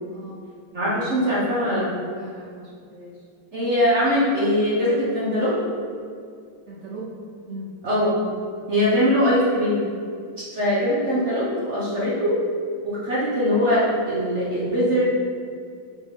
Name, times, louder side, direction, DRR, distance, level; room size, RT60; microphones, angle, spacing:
voice 1, 0.7-1.9 3.5-5.6 7.8-8.2 8.7-9.8 10.5-12.3 12.8-15.1, equal, 40° right, -8 dB, 1.2 m, -21 dB
voice 2, 2.1-3.2 6.7-7.2 7.4-7.7, right 2 dB, 70° right, -5 dB, 0.6 m, -39 dB
5.2 x 5.1 x 3.7 m, 2.3 s
omnidirectional pair, 2.3 m